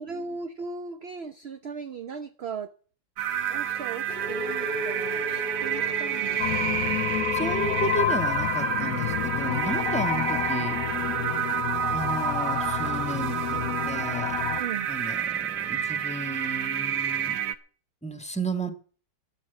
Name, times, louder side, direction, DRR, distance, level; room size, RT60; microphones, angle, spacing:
voice 1, 0.0-2.7 3.5-7.0 14.6-14.9, right 5 dB, 55° right, 10 dB, 0.7 m, -38 dB
sound 1, 3.2-17.5, right 10 dB, 90° right, 1.6 m, -29 dB
Race car auto racing / Accelerating revving vroom, 3.5-8.8, equal, 35° right, 3.2 m, -36 dB
sound 2, 6.4-14.6, left 11 dB, 60° left, 1.1 m, -29 dB
voice 2, 7.3-10.8 11.9-14.4 14.9-17.4 18.0-18.7, right 2 dB, 5° left, 8 dB, 1.4 m, -33 dB
11.0 x 10.5 x 8.1 m, 0.43 s
omnidirectional pair, 1.9 m